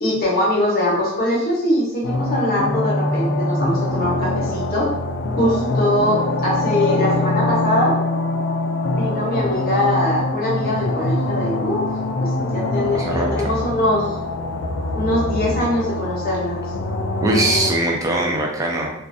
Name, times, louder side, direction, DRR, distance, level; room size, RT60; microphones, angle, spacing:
voice 1, 0.0-4.9 5.4-8.0 8.9-11.9 12.2-14.1 14.9-16.6, left 1 dB, 45° left, -5 dB, 0.8 m, -22 dB
sound 1, 2.0-17.7, left 2 dB, 60° left, 0.3 m, -23 dB
voice 2, 12.9-13.5 17.2-18.9, right 1 dB, 15° right, -1 dB, 0.3 m, -21 dB
2.4 x 2.2 x 2.5 m, 0.80 s
head